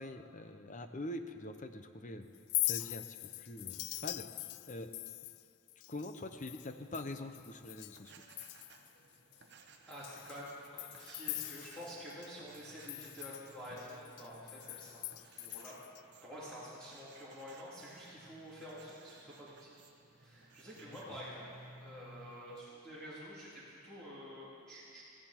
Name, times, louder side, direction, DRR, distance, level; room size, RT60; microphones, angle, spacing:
voice 1, 0.0-2.3 2.6-4.3 4.7-4.9 5.9-8.1 21.1-21.2, left 1 dB, 35° left, 8 dB, 0.7 m, -44 dB
Chink clink, 2.3-8.0 8.3-8.9 9.3-9.4 9.9-12.3 12.5-16.0, left 19 dB, 90° left, 0.3 m, -42 dB
sound 1, 7.9-22.6, right 3 dB, 50° right, 1.0 m, -59 dB
voice 2, 9.4-15.8 16.2-19.7 20.2-25.0, equal, 5° left, -11 dB, 3.2 m, -49 dB
17.5 x 14.0 x 4.5 m, 2.5 s
head